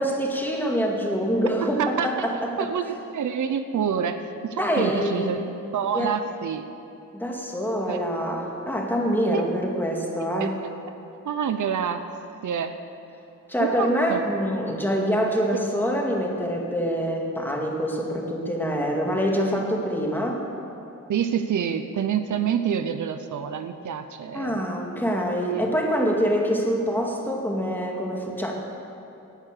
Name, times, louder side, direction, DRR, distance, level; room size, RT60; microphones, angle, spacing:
voice 1, 0.0-2.7 4.6-5.4 5.9-6.1 7.1-10.5 13.5-20.4 24.3-28.5, equal, 5° left, -1 dB, 2.1 m, -25 dB
voice 2, 1.6-2.3 2.6-6.7 7.9-8.0 9.3-9.5 9.7-9.9 10.2-10.7 11.2-12.0 12.4-12.8 13.6-14.2 21.1-24.6 25.5-25.6, right 8 dB, 70° right, 9 dB, 0.8 m, -28 dB
18.5 x 11.0 x 6.7 m, 2.8 s
wide cardioid pair, 160°, 31 cm